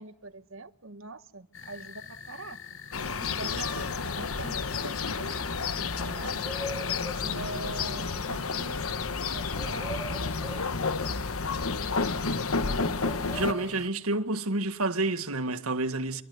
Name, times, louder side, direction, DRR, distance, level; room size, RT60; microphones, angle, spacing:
voice 1, 0.0-2.6 3.4-5.5 5.8-6.5 7.1-9.9 12.6-13.1, right 2 dB, 65° right, 1.3 m, -43 dB
sound 1, 1.5-13.9, left 5 dB, 60° left, 1.3 m, -45 dB
sound 2, 2.9-13.5, left 4 dB, 80° left, 1.2 m, -31 dB
voice 2, 3.2-3.6 13.2-16.2, right 2 dB, 85° right, 1.8 m, -30 dB
sound 3, 6.0-7.3 9.5-10.7 13.0-13.8, right 2 dB, 5° left, 3.0 m, -41 dB
26.5 x 24.0 x 9.5 m
head